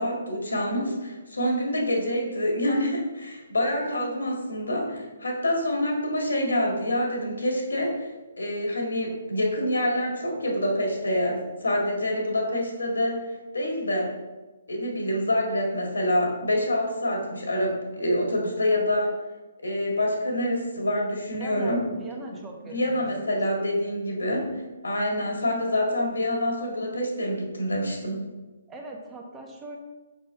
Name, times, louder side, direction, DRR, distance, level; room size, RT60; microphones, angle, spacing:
voice 1, 0.0-8.1 8.4-13.2 13.5-14.1 14.7-19.1 19.6-21.9 22.6-24.5 24.8-28.2, left 1 dB, 85° left, 0 dB, 1.8 m, -26 dB
voice 2, 21.4-23.4 28.7-29.8, right 2 dB, 15° right, 0 dB, 1.0 m, -41 dB
5.6 x 4.5 x 4.5 m, 1.2 s
hypercardioid pair, 140°, 0 cm